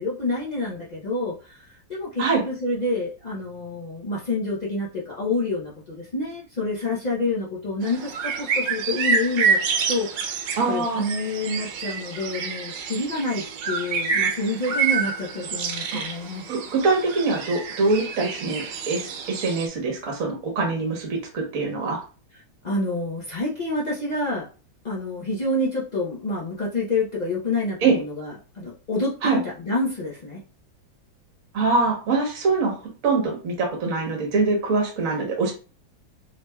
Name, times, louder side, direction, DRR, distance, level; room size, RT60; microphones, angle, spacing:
voice 1, 0.0-9.6 9.9-10.4 10.7-16.4 22.6-24.5 24.8-30.4, left 2 dB, 90° left, -6 dB, 0.3 m, -28 dB
sound 1, 7.8-19.7, right 5 dB, 75° right, 1.3 m, -28 dB
voice 2, 10.6-11.0 15.9-16.0 16.5-22.0 27.8-28.0 29.2-29.4 31.5-32.8 33.0-35.5, right 3 dB, 50° right, 0 dB, 1.4 m, -23 dB
3.8 x 3.2 x 2.3 m, 0.35 s
omnidirectional pair, 2.1 m